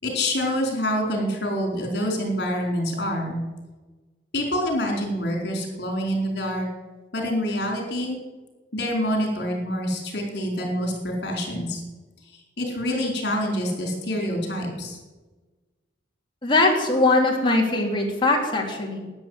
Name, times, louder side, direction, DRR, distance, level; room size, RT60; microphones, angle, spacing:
voice 1, 0.0-3.4 4.3-6.7 7.1-8.2 8.7-11.8 12.6-15.0, equal, 60° left, 1 dB, 4.5 m, -26 dB
voice 2, 16.4-19.1, left 2 dB, 25° left, 0 dB, 3.0 m, -21 dB
13.5 x 10.0 x 8.2 m, 1.2 s
head